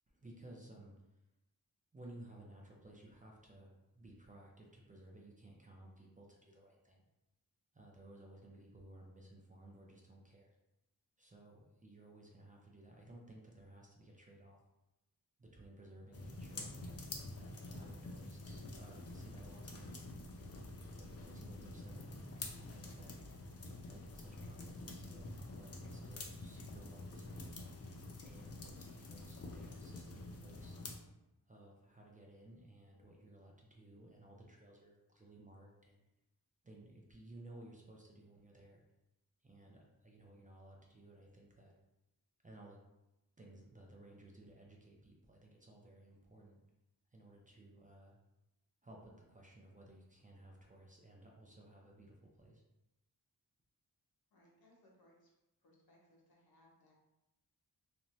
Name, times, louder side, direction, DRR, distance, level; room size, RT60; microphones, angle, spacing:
voice 1, 0.1-1.2 1.9-7.0 7.7-10.6 11.2-14.6 15.4-17.0 17.3-20.0 20.9-22.2 22.6-23.1 23.9-25.3 25.6-27.5 28.2-30.8 31.5-36.1 36.6-38.8 39.4-41.7 42.4-42.8 43.4-46.6 47.1-48.2 48.8-52.6, right 1 dB, 20° right, -2 dB, 0.5 m, -58 dB
sound 1, 15.8-27.7, equal, 70° right, 0.8 m, -60 dB
sound 2, 16.1-31.0, left 2 dB, 40° left, 0.5 m, -48 dB
voice 2, 54.3-55.3 55.6-56.9, left 1 dB, 65° left, -3 dB, 0.9 m, -68 dB
2.7 x 2.2 x 3.0 m, 0.94 s
wide cardioid pair, 70°, 39 cm